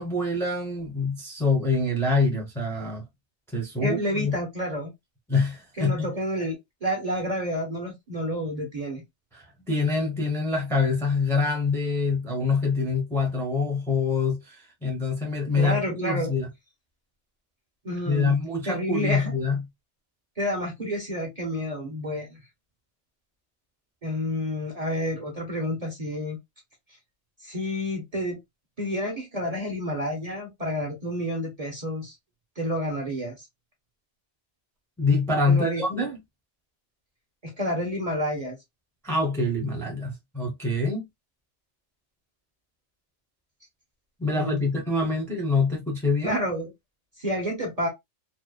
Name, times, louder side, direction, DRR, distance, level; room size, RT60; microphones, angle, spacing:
voice 1, 0.0-3.0 3.5-4.4 5.3-6.1 9.3-16.5 18.1-19.6 35.0-36.2 39.0-41.1 44.2-46.4, left 3 dB, 5° left, 0.7 m, -25 dB
voice 2, 3.8-4.9 5.8-9.0 15.6-16.3 17.8-18.4 18.6-19.3 20.4-22.4 24.0-26.4 27.4-28.4 28.8-32.1 32.6-33.5 35.5-35.8 37.4-38.6 44.3-44.6 46.2-46.7 47.2-47.9, equal, 40° right, 0.7 m, -29 dB
2.7 x 2.0 x 2.2 m
omnidirectional pair, 1.2 m